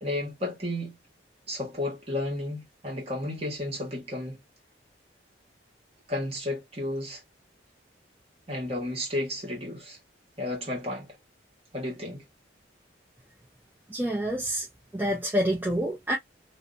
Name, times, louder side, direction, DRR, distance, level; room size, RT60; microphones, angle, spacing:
voice 1, 0.0-1.0 1.5-4.4 6.1-7.2 8.5-10.0 10.4-11.2 11.7-12.2, left 1 dB, 30° right, 1.2 m, -32 dB
voice 2, 13.9-14.7 14.9-16.2, equal, 10° right, 0.4 m, -27 dB
2.6 x 2.0 x 2.3 m
head